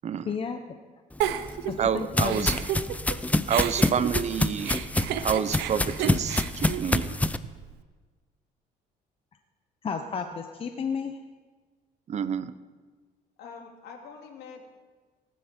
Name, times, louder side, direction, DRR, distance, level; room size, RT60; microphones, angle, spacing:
voice 1, 0.2-0.6 1.7-2.5 9.8-11.2, left 6 dB, 35° left, 6 dB, 1.0 m, -32 dB
sound 1, 1.2-7.4, left 2 dB, 10° left, 0.5 m, -27 dB
Giggle, 1.2-3.2 3.5-7.7, right 11 dB, 85° right, 0.8 m, -33 dB
voice 2, 1.8-2.5 3.5-4.8 5.2-7.2 12.1-12.5, right 8 dB, 40° right, 13 dB, 0.7 m, -28 dB
voice 3, 13.4-14.7, left 5 dB, 75° left, 2 dB, 2.7 m, -45 dB
19.0 x 11.5 x 4.5 m, 1.4 s
cardioid pair, 110°, 17 cm